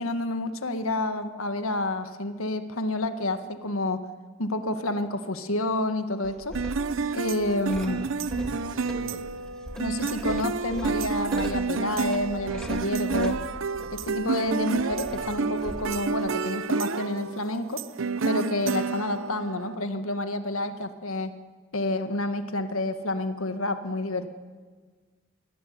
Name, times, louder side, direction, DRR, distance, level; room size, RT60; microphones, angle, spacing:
voice 1, 0.0-4.1 4.4-6.6 7.1-8.0 9.8-13.4 13.9-17.8 18.2-21.4 21.7-24.3, left 1 dB, 85° left, 9 dB, 1.7 m, -29 dB
sound 1, 6.2-16.3, equal, 5° left, 1.9 m, -41 dB
sound 2, 6.5-19.7, right 4 dB, 70° right, 0.8 m, -30 dB
voice 2, 7.8-9.4, right 1 dB, 20° right, 5 dB, 2.3 m, -42 dB
24.0 x 18.5 x 9.6 m, 1.5 s
head